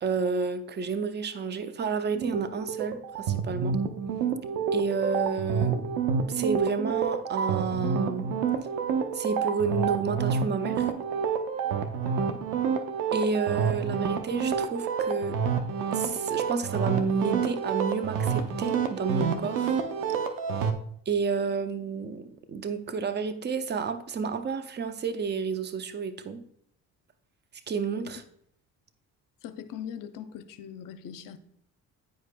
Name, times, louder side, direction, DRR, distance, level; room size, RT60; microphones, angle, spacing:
voice 1, 0.0-3.8 4.7-6.0 6.3-8.3 9.1-10.9 13.1-15.4 15.9-19.7 21.1-26.4 27.7-28.2, right 5 dB, 30° right, 0.6 m, -30 dB
sound 1, 2.1-20.7, right 6 dB, 85° right, 0.6 m, -29 dB
voice 2, 12.0-12.4 28.0-28.1 29.4-31.4, left 9 dB, 75° left, 0.6 m, -41 dB
9.2 x 5.0 x 2.2 m
supercardioid pair, 80°, 33 cm